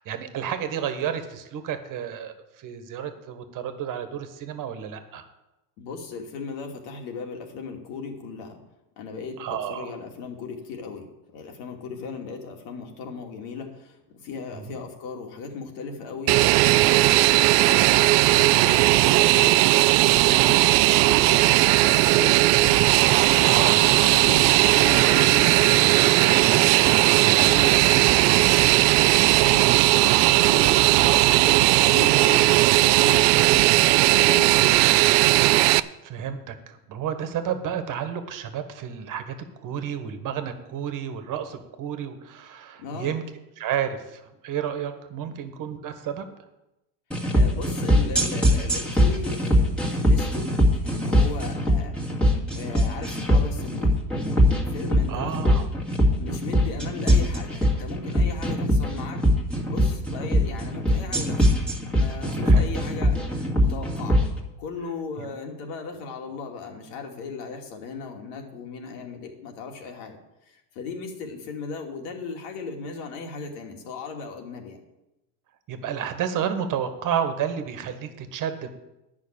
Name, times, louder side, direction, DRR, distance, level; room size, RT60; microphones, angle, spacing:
voice 1, 0.0-5.2 9.4-9.9 14.5-14.8 23.5-23.8 27.1-27.4 36.0-43.2 43.6-46.3 55.1-55.7 62.4-62.6 65.2-65.3 75.7-78.7, right 8 dB, 40° right, 9 dB, 1.6 m, -31 dB
voice 2, 5.8-8.6 9.0-26.4 26.9-35.1 42.8-43.1 45.3-45.4 47.3-50.5 50.8-52.0 52.5-54.0 54.7-55.6 56.1-59.2 59.6-61.5 61.9-64.2 64.6-70.2 70.5-74.8, left 5 dB, 65° left, 2 dB, 2.7 m, -37 dB
Fixed-wing aircraft airplane, 16.3-35.8, right 18 dB, 60° right, 0.5 m, -18 dB
sound 1, 47.1-64.3, equal, ahead, 2.1 m, -21 dB
10.5 x 6.1 x 8.9 m, 0.94 s
supercardioid pair, 115°, 47 cm